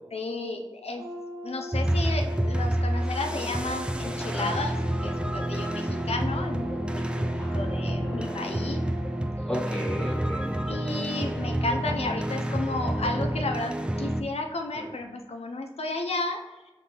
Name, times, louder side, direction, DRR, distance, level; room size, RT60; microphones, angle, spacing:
voice 1, 0.1-1.1 1.4-7.3 7.5-8.8 10.7-16.4, left 2 dB, 85° left, 4 dB, 0.4 m, -33 dB
Brass instrument, 0.9-9.4, equal, 40° right, 0.8 m, -40 dB
sound 1, 1.7-14.2, right 1 dB, 10° right, 0.3 m, -29 dB
voice 2, 4.2-4.5 7.4-8.5 9.5-10.7 14.7-14.9, equal, 10° left, -3 dB, 1.3 m, -35 dB
5.3 x 2.6 x 2.8 m, 1.1 s
wide cardioid pair, 50°, 10 cm